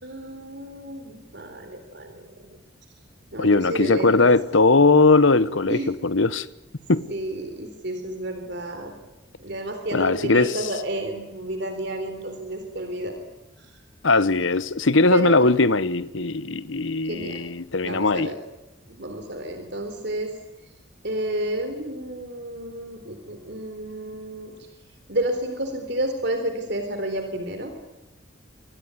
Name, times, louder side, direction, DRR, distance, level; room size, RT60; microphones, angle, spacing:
voice 1, 0.0-2.6 3.3-4.3 5.7-6.0 7.1-8.9 9.4-13.1 13.6-13.8 15.1-15.5 17.0-17.4 17.8-18.4 18.9-20.3 20.6-20.7 21.0-24.7 25.1-27.7, right 1 dB, 55° right, 3.8 m, -31 dB
voice 2, 3.4-6.5 6.9-7.1 9.9-10.5 14.0-18.3, left 3 dB, 75° left, 1.1 m, -19 dB
26.5 x 20.5 x 9.8 m
head